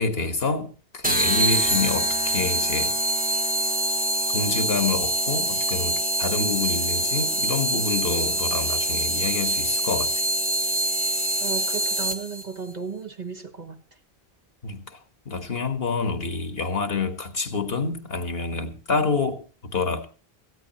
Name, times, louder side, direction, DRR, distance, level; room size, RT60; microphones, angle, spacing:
voice 1, 0.0-3.0 4.3-10.2 14.6-14.8 15.3-20.1, left 4 dB, 70° left, 1.7 m, -27 dB
sound 1, 1.0-12.4, right 1 dB, 10° right, 1.3 m, -25 dB
voice 2, 11.4-13.8, right 5 dB, 40° right, 1.5 m, -34 dB
18.0 x 15.0 x 3.0 m
omnidirectional pair, 1.1 m